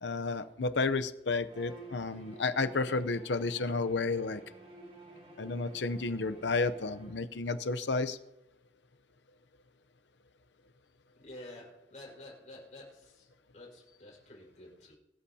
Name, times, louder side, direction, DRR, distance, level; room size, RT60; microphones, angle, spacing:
voice 1, 0.0-4.4 5.4-8.2, left 3 dB, 85° left, 10 dB, 0.7 m, -31 dB
Bowed string instrument, 1.5-7.3, right 2 dB, 30° right, 3.3 m, -51 dB
voice 2, 11.2-13.3 13.5-15.0, left 1 dB, 40° left, -3 dB, 4.9 m, -50 dB
22.5 x 13.0 x 2.8 m, 0.95 s
head